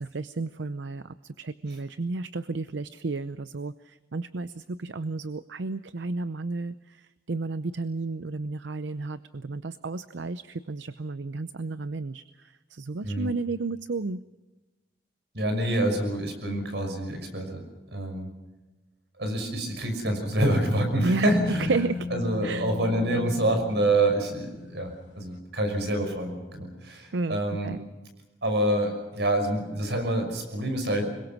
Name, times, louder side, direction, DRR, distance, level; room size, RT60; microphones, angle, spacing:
voice 1, 0.0-14.2 21.0-22.1 22.4-22.7 27.1-27.9, right 3 dB, 90° right, 14 dB, 0.6 m, -32 dB
voice 2, 15.3-17.6 17.9-18.3 19.2-21.7 22.1-27.7 28.4-31.1, right 1 dB, 70° right, 5 dB, 6.0 m, -27 dB
sound 1, 21.2-25.1, left 3 dB, 75° left, 3.0 m, -36 dB
25.5 x 22.5 x 6.0 m, 1.1 s
head